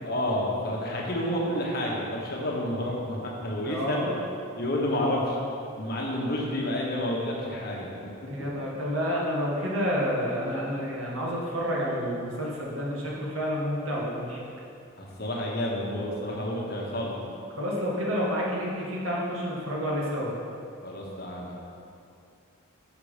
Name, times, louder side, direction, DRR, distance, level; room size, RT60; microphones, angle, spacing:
voice 1, 0.0-4.1 4.6-5.4 5.8-8.1 15.0-17.2 20.8-21.6, left 1 dB, 45° left, -3 dB, 1.1 m, -30 dB
voice 2, 3.6-4.2 8.3-14.4 17.6-20.3, equal, 80° right, -4 dB, 1.5 m, -29 dB
5.9 x 5.8 x 5.0 m, 2.5 s
head